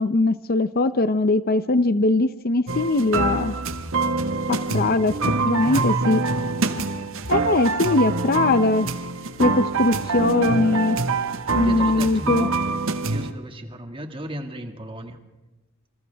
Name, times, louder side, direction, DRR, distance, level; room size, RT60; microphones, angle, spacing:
voice 1, 0.0-3.5 4.5-5.1 5.4-6.2 7.3-8.9 9.4-11.0 11.6-12.5, left 2 dB, 45° left, 13 dB, 0.7 m, -21 dB
sound 1, 2.7-13.3, right 3 dB, 65° right, 1.5 m, -25 dB
voice 2, 5.6-6.0 7.8-8.2 11.6-12.6 12.9-15.2, equal, 25° right, 5 dB, 2.1 m, -35 dB
27.5 x 27.0 x 3.5 m, 1.1 s
head